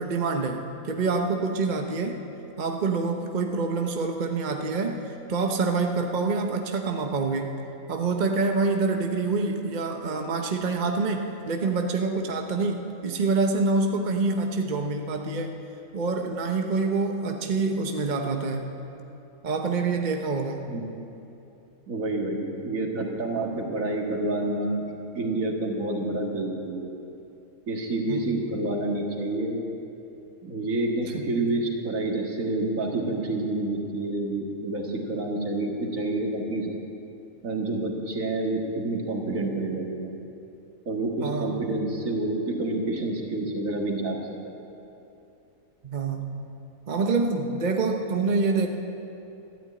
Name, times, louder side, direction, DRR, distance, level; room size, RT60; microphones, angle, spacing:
voice 1, 0.0-2.2 2.6-7.6 7.9-15.6 15.9-18.7 19.4-20.7 28.1-28.6 31.1-31.3 41.2-41.8 45.8-46.4 46.9-48.7, right 3 dB, 35° right, 3 dB, 0.9 m, -26 dB
voice 2, 21.9-24.9 25.2-27.0 27.7-29.6 30.4-36.7 37.4-40.1 40.9-44.2 44.4-44.5, right 2 dB, 70° right, 0 dB, 2.2 m, -28 dB
13.5 x 12.0 x 8.7 m, 2.9 s
omnidirectional pair, 1.5 m